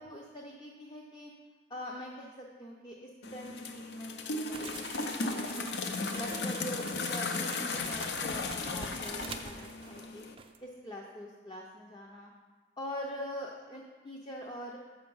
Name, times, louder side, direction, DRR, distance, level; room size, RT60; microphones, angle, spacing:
voice 1, 0.0-1.3 1.7-5.7 6.1-10.2 10.6-12.3 12.8-14.8, equal, 25° left, -1 dB, 0.6 m, -43 dB
sound 1, 3.2-10.3, left 3 dB, 70° left, 0.6 m, -36 dB
sound 2, 4.5-10.1 10.4-10.6, right 5 dB, 30° right, 0.4 m, -46 dB
6.9 x 5.7 x 5.4 m, 1.4 s
head